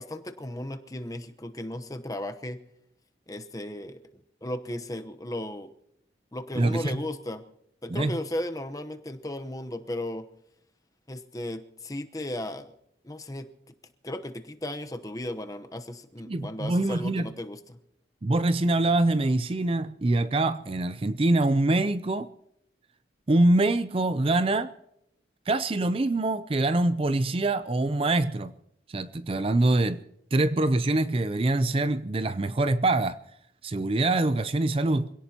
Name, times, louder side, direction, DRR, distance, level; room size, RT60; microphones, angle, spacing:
voice 1, 0.0-2.6 3.3-4.0 4.4-5.7 6.3-7.4 7.8-10.3 11.1-12.7 13.0-13.5 14.0-17.8, left 1 dB, 20° left, 0.9 m, -35 dB
voice 2, 6.6-7.0 7.9-8.1 16.3-17.3 18.2-22.3 23.3-24.7 25.5-28.5 28.9-30.0 30.3-33.2 33.6-35.1, right 2 dB, 30° right, 0.5 m, -24 dB
26.5 x 17.0 x 2.9 m
head